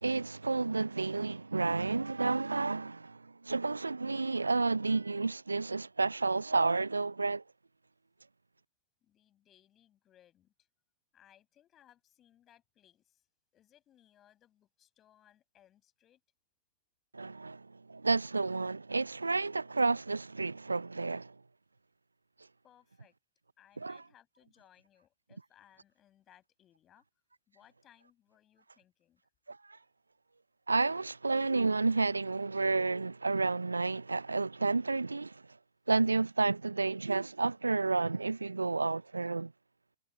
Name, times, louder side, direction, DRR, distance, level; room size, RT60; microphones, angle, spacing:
voice 1, 0.0-7.4 17.1-21.4 23.8-24.0 29.5-29.8 30.7-35.4 35.9-39.5, right 3 dB, 85° right, 0.3 m, -31 dB
voice 2, 9.0-10.7 11.1-13.3 13.5-16.2 22.6-23.1 23.6-27.1 27.5-29.2, left 11 dB, 30° left, 7.4 m, -65 dB
figure-of-eight pair, 100°, 0 cm